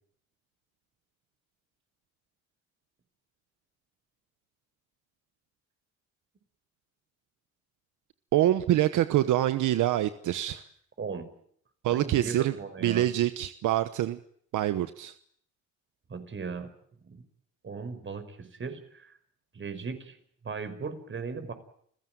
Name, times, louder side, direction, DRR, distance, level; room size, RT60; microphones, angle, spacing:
voice 1, 8.3-10.6 11.8-12.5 12.8-14.2 14.5-15.1, right 13 dB, 80° right, 12 dB, 1.1 m, -25 dB
voice 2, 11.0-11.3 11.9-13.1 16.1-16.7 17.0-17.2 17.6-19.1 19.5-20.2 20.4-21.5, right 5 dB, 40° right, 10 dB, 5.4 m, -37 dB
30.0 x 16.0 x 9.3 m, 0.65 s
cardioid pair, 90°, 30 cm